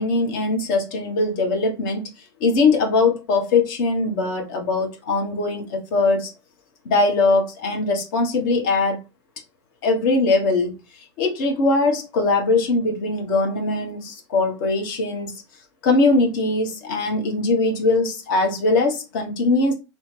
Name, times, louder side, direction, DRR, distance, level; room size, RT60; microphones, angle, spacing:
voice 1, 0.0-2.0 2.4-6.3 6.8-9.0 9.8-10.7 11.2-15.3 15.8-19.7, left 3 dB, 45° left, 1.0 m, -21 dB
3.0 x 2.1 x 3.2 m
figure-of-eight pair, 95°, 15 cm